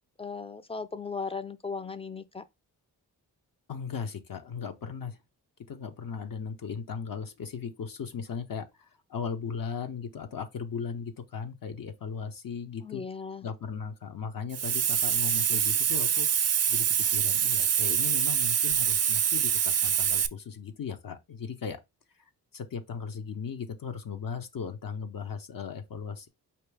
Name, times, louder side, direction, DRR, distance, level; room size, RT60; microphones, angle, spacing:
voice 1, 0.2-2.4 12.8-13.5, left 5 dB, 15° left, 0.5 m, -37 dB
voice 2, 3.7-5.2 5.7-13.0 13.4-16.3 16.7-21.8 22.2-22.3 22.5-26.3, left 6 dB, 55° left, 0.8 m, -37 dB
Hiss, 14.5-20.3, right 8 dB, 40° right, 0.5 m, -25 dB
4.4 x 2.9 x 3.3 m
cardioid pair, 45°, 41 cm